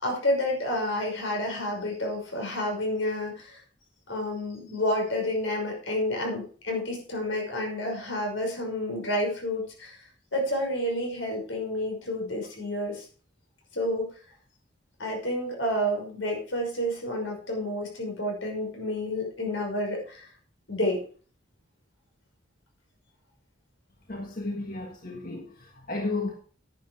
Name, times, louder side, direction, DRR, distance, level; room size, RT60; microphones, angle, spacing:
voice 1, 0.0-3.6 4.1-10.0 10.3-13.1 13.7-14.1 15.0-20.3 20.7-21.0, left 1 dB, 80° left, 5.9 m, -29 dB
voice 2, 24.1-26.3, left 2 dB, 45° left, 1.6 m, -33 dB
10.5 x 9.8 x 4.8 m
head